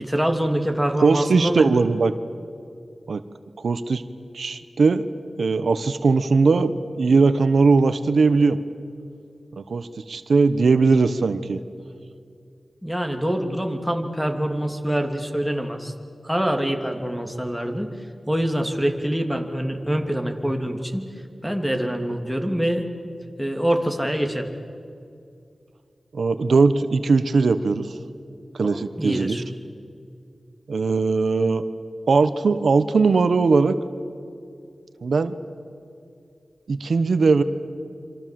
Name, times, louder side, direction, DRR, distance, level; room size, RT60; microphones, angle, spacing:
voice 1, 0.0-1.7 12.8-15.9 16.2-17.9 18.3-21.1 21.4-22.8 23.4-24.5 28.7-29.4, equal, ahead, 5 dB, 2.9 m, -25 dB
voice 2, 1.0-2.1 3.1-3.2 3.6-4.0 4.3-5.1 5.4-8.6 9.6-11.6 26.1-28.0 28.5-29.4 30.7-31.6 32.1-33.8 35.0-35.3 36.7-37.4, right 4 dB, 85° right, 11 dB, 1.1 m, -19 dB
27.5 x 26.0 x 7.7 m, 2.4 s
wide cardioid pair, 65°, 0 cm